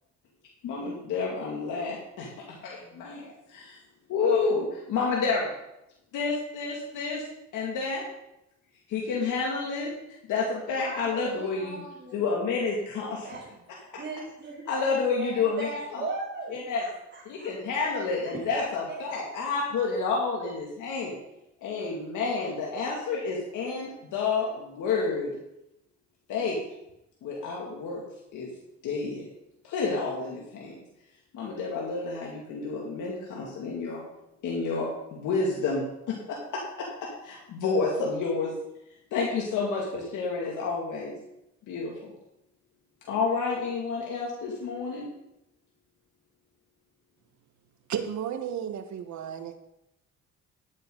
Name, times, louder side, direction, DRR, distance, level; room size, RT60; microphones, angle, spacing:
voice 1, 0.6-3.8 4.1-5.5 6.1-7.2 7.5-8.0 8.9-9.9 10.3-11.8 12.1-13.3 14.7-16.0 16.5-16.9 17.3-21.2 21.6-25.3 26.3-26.6 27.2-28.0 28.3-28.5 28.8-29.2 29.6-30.8 31.3-34.0 34.4-38.5 39.1-41.1 41.7-42.1 43.1-45.1, left 4 dB, 85° left, -3 dB, 2.4 m, -30 dB
voice 2, 10.8-12.6 13.2-13.6 13.9-17.5 18.5-18.6 18.8-19.1, right 3 dB, 40° right, -5 dB, 3.2 m, -39 dB
voice 3, 47.9-49.6, right 8 dB, 70° right, 8 dB, 1.3 m, -33 dB
12.5 x 9.6 x 3.9 m, 0.84 s
cardioid pair, 90°, 30 cm